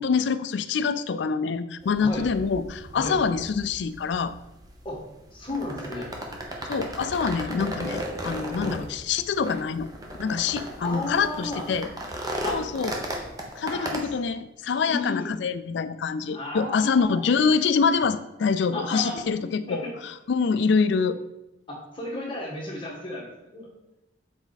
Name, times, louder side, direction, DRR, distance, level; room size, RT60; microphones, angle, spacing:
voice 1, 0.0-4.3 6.6-9.9 10.2-11.9 12.5-13.0 13.6-21.2, left 5 dB, 60° left, 14 dB, 0.3 m, -25 dB
voice 2, 1.8-2.3 2.9-3.2 4.8-5.0 5.3-6.1 8.6-8.7 10.8-11.7 12.4-12.6 13.7-14.1 14.9-15.3 16.3-17.2 18.7-19.9 21.7-23.7, left 2 dB, 25° left, -2 dB, 1.4 m, -33 dB
sound 1, 1.8-14.0, right 1 dB, 20° right, 0.8 m, -36 dB
7.1 x 4.3 x 4.0 m, 0.95 s
head